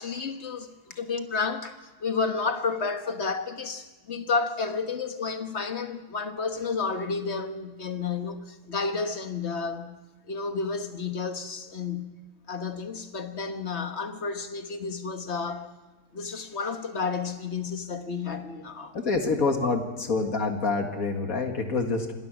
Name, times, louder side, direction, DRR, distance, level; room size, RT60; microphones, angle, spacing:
voice 1, 0.0-10.0 10.3-12.1 12.5-15.7 16.1-19.0, left 4 dB, 50° left, 1.6 m, -31 dB
voice 2, 18.9-19.8 20.1-22.1, left 3 dB, 85° left, 2.4 m, -26 dB
25.5 x 18.5 x 6.2 m
omnidirectional pair, 1.5 m